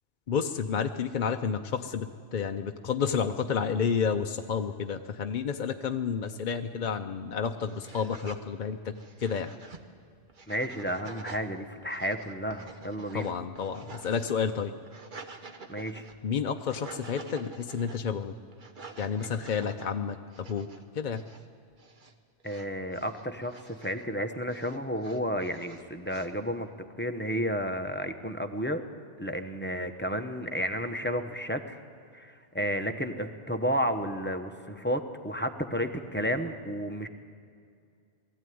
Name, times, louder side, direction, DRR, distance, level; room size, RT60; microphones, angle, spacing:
voice 1, 0.3-8.9 9.2-9.5 13.1-14.7 16.2-18.4 19.0-20.7 20.9-21.2, left 6 dB, 50° left, 5 dB, 0.7 m, -30 dB
sound 1, 7.5-8.4 8.9-9.8 10.3-11.5 11.8-14.3 14.7-16.2 16.6-18.0 18.5-19.9 20.3-20.8 21.1-21.5 21.7-22.1 22.4-24.0 24.4-26.3, right 4 dB, 45° right, 1.2 m, -48 dB
voice 2, 10.5-13.3 15.7-16.1 22.4-26.7 27.0-28.8 29.2-31.8 32.1-37.1, equal, 10° left, 6 dB, 0.9 m, -32 dB
20.5 x 14.0 x 9.4 m, 2.3 s
omnidirectional pair, 1.2 m